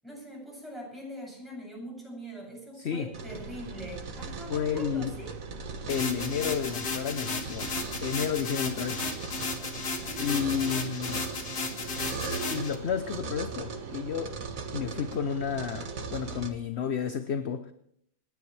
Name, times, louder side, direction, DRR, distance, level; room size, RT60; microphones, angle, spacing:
voice 1, 0.0-5.3 10.0-10.7, equal, ahead, -2 dB, 7.4 m, -43 dB
voice 2, 2.8-3.1 4.5-5.1 5.9-9.0 10.2-11.3 12.1-12.2 12.5-14.4 14.7-17.7, left 7 dB, 50° left, 9 dB, 0.9 m, -31 dB
sound 1, 3.1-16.5, right 4 dB, 55° right, 1.6 m, -39 dB
sound 2, 5.9-12.7, left 4 dB, 75° left, 2.4 m, -34 dB
28.0 x 10.5 x 3.3 m, 0.70 s
omnidirectional pair, 1.8 m